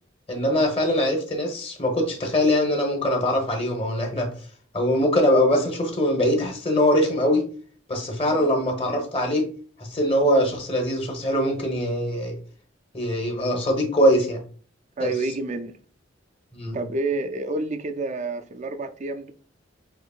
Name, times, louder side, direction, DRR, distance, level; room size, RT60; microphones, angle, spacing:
voice 1, 0.3-4.3 4.7-7.5 7.9-9.5 9.8-12.4 12.9-14.4 15.0-15.1 16.5-16.8, left 1 dB, 30° left, 1.1 m, -22 dB
voice 2, 15.0-15.7 16.7-19.3, right 3 dB, 35° right, 0.4 m, -29 dB
5.7 x 3.0 x 2.4 m
head